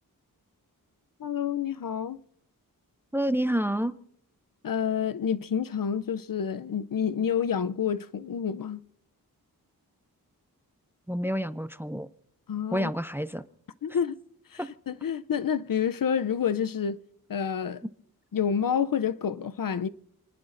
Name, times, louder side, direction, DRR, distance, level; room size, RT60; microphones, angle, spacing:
voice 1, 1.2-2.2 4.6-8.8 12.5-12.9 13.8-14.2 14.5-14.6 14.9-17.0 17.3-17.8 18.3-19.9, left 7 dB, 65° left, 0.6 m, -28 dB
voice 2, 3.1-4.0 11.1-12.1 12.7-13.4 14.6-14.7, equal, 5° right, 0.5 m, -28 dB
28.5 x 20.0 x 2.6 m
wide cardioid pair, 80°, 36 cm